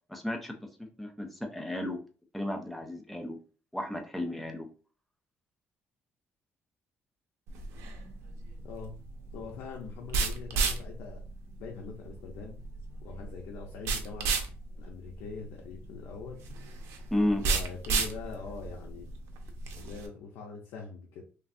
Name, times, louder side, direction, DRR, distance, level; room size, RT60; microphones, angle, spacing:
voice 1, 0.1-0.5 0.8-2.0 2.3-3.4 3.7-4.7 17.1-17.4, left 1 dB, ahead, 3 dB, 0.4 m, -33 dB
sound 1, 7.5-20.1, right 4 dB, 90° right, 0.5 m, -34 dB
voice 2, 8.6-9.0 9.3-11.2 11.6-12.6 13.0-14.3 14.8-16.5 17.4-19.1 19.7-21.2, left 5 dB, 85° left, 0 dB, 0.6 m, -43 dB
3.2 x 2.4 x 2.5 m, 0.38 s
cardioid pair, 175°, 4 cm